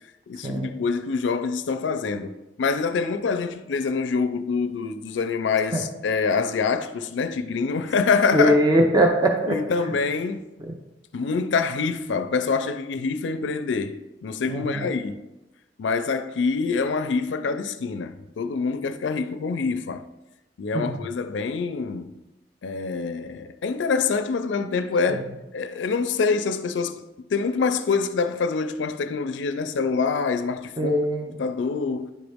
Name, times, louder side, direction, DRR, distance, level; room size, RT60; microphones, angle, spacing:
voice 1, 0.3-8.6 9.5-10.5 11.1-15.2 15.8-20.0 20.6-22.1 22.6-27.1 27.3-31.0 31.4-32.1, left 4 dB, 80° left, 0.4 m, -25 dB
voice 2, 8.3-9.6 10.6-10.7 14.5-14.9 20.7-21.0 25.1-25.2 30.8-31.3, equal, 20° right, 0.6 m, -21 dB
9.8 x 3.9 x 3.5 m
head